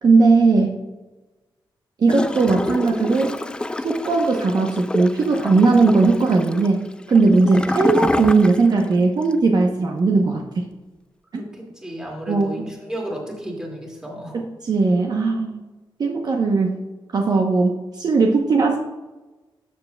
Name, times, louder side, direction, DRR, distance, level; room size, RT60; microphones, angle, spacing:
voice 1, 0.0-0.8 2.0-3.4 3.8-10.6 11.3-11.4 12.3-12.6 14.3-15.6 16.0-16.8 17.1-18.8, right 3 dB, 50° right, 1 dB, 0.8 m, -18 dB
Gurgling / Toilet flush, 2.1-8.9 9.2-9.3, left 2 dB, 10° left, 0.3 m, -27 dB
voice 2, 11.3-14.5, equal, 10° right, -1 dB, 2.1 m, -33 dB
13.0 x 7.0 x 2.2 m, 1.2 s
wide cardioid pair, 135°, 9 cm